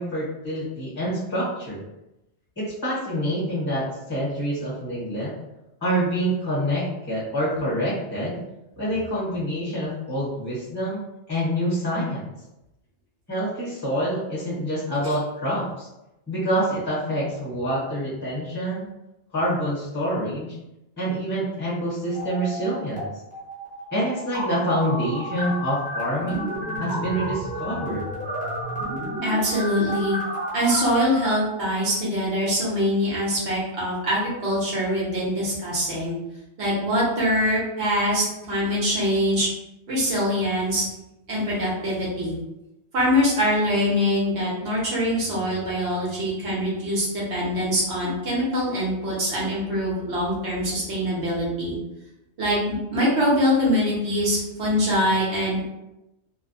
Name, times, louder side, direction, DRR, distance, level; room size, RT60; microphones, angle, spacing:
voice 1, 0.0-1.8 2.6-5.3 5.8-8.4 8.8-11.0 11.3-12.2 13.3-15.9 16.3-18.9 19.3-20.6 21.0-23.1 23.9-26.5 26.8-28.1, equal, 25° left, -8 dB, 0.8 m, -26 dB
sound 1, 22.1-23.0 23.3-31.3, equal, 10° right, 0.7 m, -32 dB
voice 2, 29.2-30.2 30.5-36.1 36.6-39.5 39.9-40.8 41.3-42.4 42.9-51.8 52.4-55.6, equal, 75° right, -5 dB, 1.2 m, -23 dB
2.6 x 2.1 x 2.6 m, 0.92 s
omnidirectional pair, 1.2 m